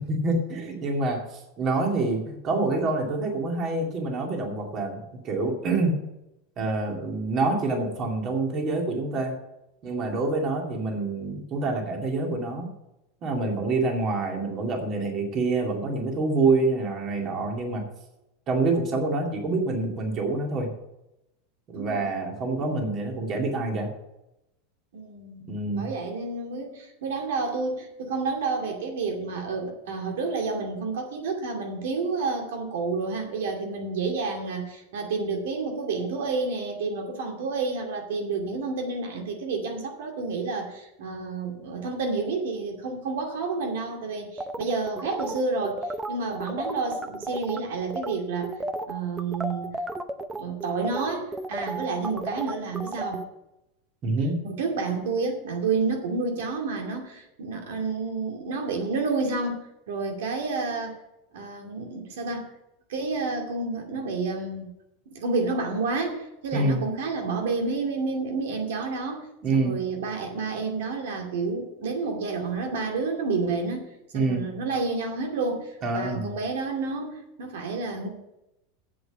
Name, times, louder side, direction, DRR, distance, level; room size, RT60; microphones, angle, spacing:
voice 1, 0.1-6.0 6.6-9.4 9.8-12.7 13.2-17.8 18.5-20.7 21.7-23.9 25.5-25.9 54.0-54.4 66.5-66.8 69.4-69.8 74.1-74.5 75.8-76.3, right 3 dB, 35° right, 2 dB, 2.3 m, -26 dB
voice 2, 21.7-22.2 24.9-48.5 48.9-49.8 50.4-53.2 54.4-59.6 59.9-61.0 61.3-62.5 62.9-64.7 65.1-73.8 74.1-78.1, right 4 dB, 85° right, 2 dB, 2.4 m, -30 dB
sound 1, 44.4-47.6 47.9-48.1 48.4-53.2, right 2 dB, 10° right, 0.7 m, -33 dB
8.0 x 7.6 x 8.1 m, 0.89 s
supercardioid pair, 150°, 0 cm